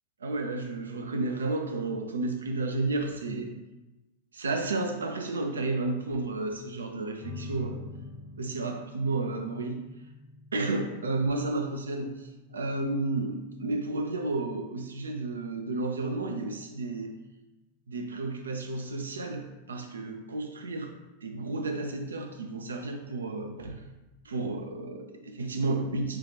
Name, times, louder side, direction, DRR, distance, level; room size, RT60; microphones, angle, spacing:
voice 1, 0.2-3.5 4.3-7.8 8.4-9.8 10.5-17.2 17.9-20.9 21.2-23.8 24.2-26.2, right 2 dB, 70° right, 4 dB, 0.4 m, -32 dB
sound 1, 7.2-18.2, left 3 dB, 45° right, 0.9 m, -48 dB
3.7 x 2.4 x 2.8 m, 1.0 s
figure-of-eight pair, 90°, 0 cm